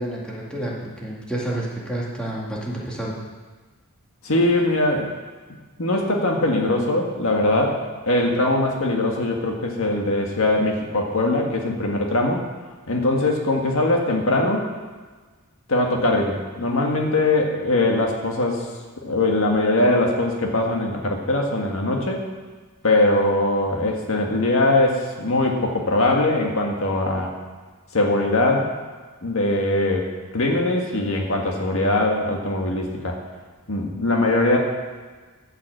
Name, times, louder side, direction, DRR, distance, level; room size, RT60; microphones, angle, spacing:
voice 1, 0.0-3.2, right 1 dB, 5° left, -5 dB, 2.1 m, -29 dB
voice 2, 4.2-5.1 5.8-12.4 12.9-14.6 15.7-18.7 19.0-22.3 22.8-27.3 27.9-28.7 29.2-33.2 33.7-34.6, left 2 dB, 65° left, 1 dB, 1.8 m, -21 dB
13.0 x 5.9 x 7.8 m, 1.4 s
head